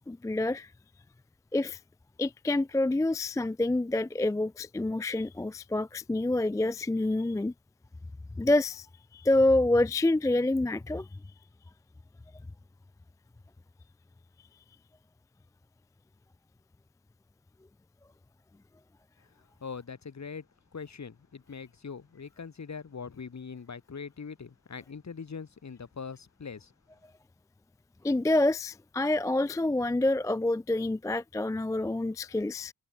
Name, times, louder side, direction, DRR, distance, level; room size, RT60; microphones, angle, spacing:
voice 1, 0.1-0.7 1.5-1.8 2.2-7.5 8.4-8.9 9.1-11.1 28.0-32.7, left 2 dB, 10° left, 0.3 m, -27 dB
voice 2, 19.2-20.5 20.7-26.7, left 5 dB, 40° left, 2.3 m, -42 dB
cardioid pair, 90°, 41 cm